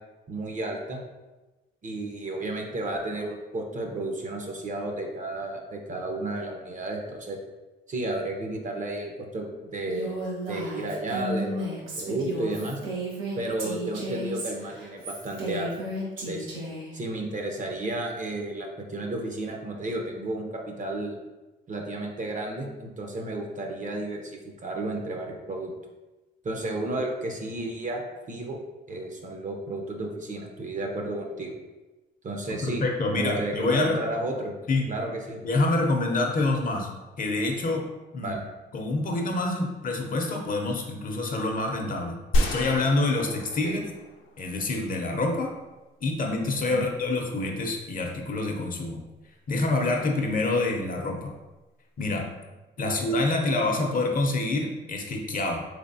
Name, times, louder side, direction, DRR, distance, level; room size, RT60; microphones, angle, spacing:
voice 1, 0.3-1.0 1.8-7.4 7.9-10.2 10.5-12.8 13.4-15.7 16.2-16.5 16.9-21.2 21.7-25.7 26.4-28.0 28.3-28.6 28.9-31.6 32.2-32.8 33.2-34.6 34.9-35.4 38.2-38.4 43.6-43.8 46.7-46.9 52.9-53.0, right 2 dB, 40° right, 1 dB, 0.7 m, -32 dB
Female speech woman speaking, 9.9-16.9, right 1 dB, 85° right, 1.1 m, -34 dB
voice 2, 32.6-34.0 34.7-34.9 35.4-36.9 37.2-38.4 38.7-43.8 44.4-45.5 46.0-49.0 49.5-51.3 52.0-52.3 52.8-55.7, left 2 dB, 45° left, 2 dB, 0.6 m, -27 dB
sound 1, 42.3-44.7, equal, 85° left, 0.5 m, -29 dB
3.3 x 3.3 x 2.7 m, 1.1 s
cardioid pair, 90°, 20 cm